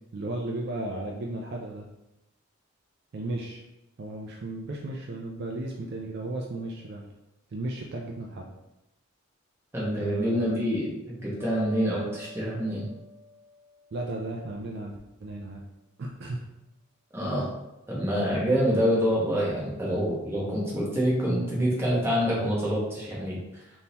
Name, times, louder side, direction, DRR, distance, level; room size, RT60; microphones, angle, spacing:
voice 1, 0.1-1.9 3.1-3.6 4.0-7.1 7.5-8.5 10.0-10.5 13.9-15.6 16.0-16.4, right 2 dB, 50° right, -1 dB, 0.3 m, -35 dB
voice 2, 9.7-12.8 17.1-17.5 17.9-23.6, equal, 10° right, -6 dB, 0.9 m, -26 dB
sound 1, 11.4-14.5, equal, 65° right, 1.0 m, -45 dB
3.6 x 2.6 x 2.8 m, 0.93 s
head